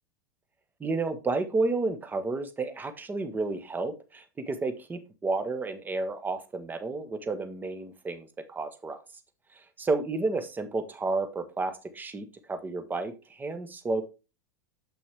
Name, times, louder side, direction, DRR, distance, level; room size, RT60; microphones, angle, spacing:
voice 1, 0.8-9.0 9.5-14.0, right 3 dB, 20° right, 9 dB, 1.2 m, -31 dB
7.1 x 6.0 x 3.5 m, 0.28 s
hypercardioid pair, 95°, 10 cm